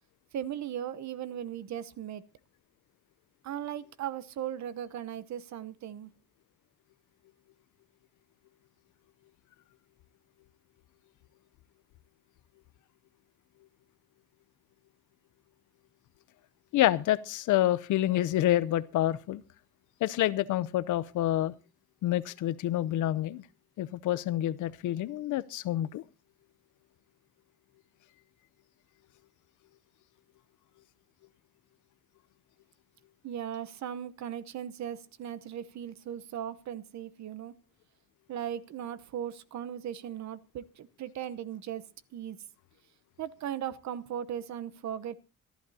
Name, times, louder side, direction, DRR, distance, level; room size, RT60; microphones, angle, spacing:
voice 1, 0.3-2.2 3.4-6.1 33.2-37.5 38.3-42.4 43.2-45.2, right 10 dB, 65° right, 0.9 m, -38 dB
voice 2, 16.7-19.4 20.0-21.5 22.0-23.4 23.8-26.0, left 13 dB, 80° left, 0.7 m, -28 dB
25.5 x 11.5 x 2.8 m
cardioid pair, 90°, 30 cm